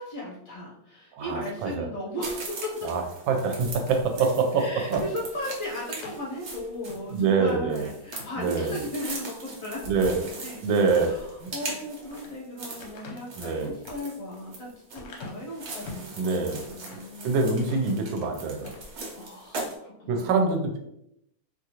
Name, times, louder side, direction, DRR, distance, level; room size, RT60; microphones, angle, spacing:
voice 1, 0.0-2.9 4.2-4.3 4.6-17.3 19.1-20.6, left 1 dB, 55° left, -4 dB, 1.1 m, -37 dB
voice 2, 1.1-1.9 2.8-5.0 7.1-7.9 8.4-8.7 9.9-10.2 10.6-11.1 11.4-11.5 13.4-13.7 16.2-16.6 17.2-18.7 20.1-20.8, right 4 dB, 85° right, 4 dB, 1.3 m, -25 dB
sound 1, 2.2-19.8, right 3 dB, 60° right, 1.2 m, -40 dB
sound 2, 3.7-6.3 6.8-7.0 7.4-7.5 7.9-8.9 9.4-9.8 11.6-12.3 12.8-16.1 16.6-17.2 17.6-18.3 18.6-18.9, left 3 dB, 75° left, 1.3 m, -44 dB
3.2 x 2.4 x 2.7 m, 0.78 s
omnidirectional pair, 2.1 m